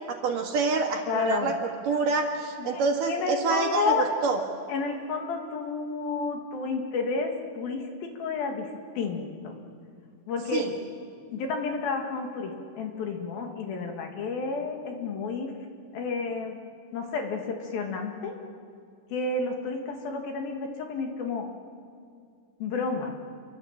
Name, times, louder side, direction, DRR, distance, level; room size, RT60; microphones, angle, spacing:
voice 1, 0.1-1.6 1.9-4.4 10.5-10.7, right 4 dB, 60° right, 2 dB, 3.2 m, -27 dB
voice 2, 1.1-1.6 2.6-4.1 4.7-8.7 9.0-9.6 10.3-10.7 11.3-15.5 15.9-16.6 16.9-18.4 19.1-21.5 22.6-23.2, left 4 dB, 65° left, 3 dB, 3.6 m, -31 dB
28.5 x 23.5 x 7.3 m, 2.2 s
omnidirectional pair, 4.7 m